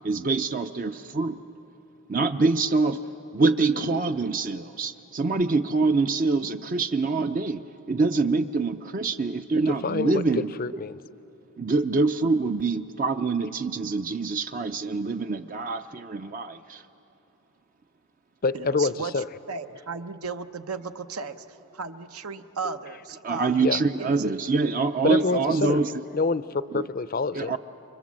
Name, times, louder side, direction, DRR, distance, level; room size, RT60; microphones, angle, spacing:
voice 1, 0.0-1.4 2.1-3.0 3.3-7.6 7.9-10.5 11.6-16.8 22.6-22.7 23.2-25.9 26.7-26.8 27.3-27.6, right 3 dB, 35° right, 8 dB, 0.5 m, -25 dB
voice 2, 9.7-10.2 10.6-10.9 18.4-19.3 23.6-23.8 25.0-25.8 26.1-27.5, left 4 dB, 40° left, 15 dB, 0.5 m, -26 dB
voice 3, 18.5-21.4 21.7-23.7 24.0-24.3 25.1-25.5, right 5 dB, 80° right, 9 dB, 0.9 m, -35 dB
30.0 x 25.0 x 7.4 m, 3.0 s
head